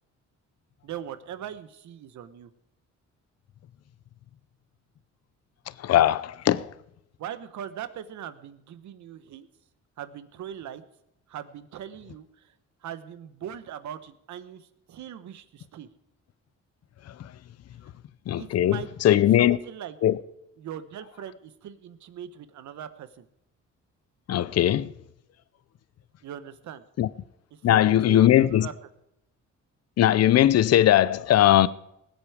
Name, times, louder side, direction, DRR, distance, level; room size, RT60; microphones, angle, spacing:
voice 1, 0.8-2.5 7.2-9.5 10.0-10.8 11.3-12.5 12.8-15.9 18.4-20.0 20.6-23.3 26.2-26.8 27.5-28.7, right 10 dB, 70° right, 1.1 m, -40 dB
voice 2, 5.8-6.7 18.3-19.6 20.0-20.2 24.3-24.9 27.0-27.1 27.6-28.7 30.0-31.7, left 12 dB, 55° left, 0.6 m, -19 dB
19.5 x 8.2 x 4.9 m
cardioid pair, 90°, 30 cm